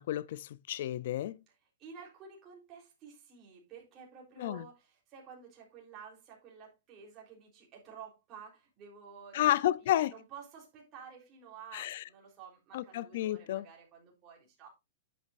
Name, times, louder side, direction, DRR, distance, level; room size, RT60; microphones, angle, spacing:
voice 1, 0.0-1.4 4.4-4.6 9.3-10.1 11.7-12.0 12.7-13.6, left 13 dB, 50° left, 0.5 m, -31 dB
voice 2, 1.8-9.6 9.8-14.7, right 6 dB, 25° right, 3.7 m, -52 dB
11.0 x 8.4 x 2.5 m
supercardioid pair, 170°, 0 cm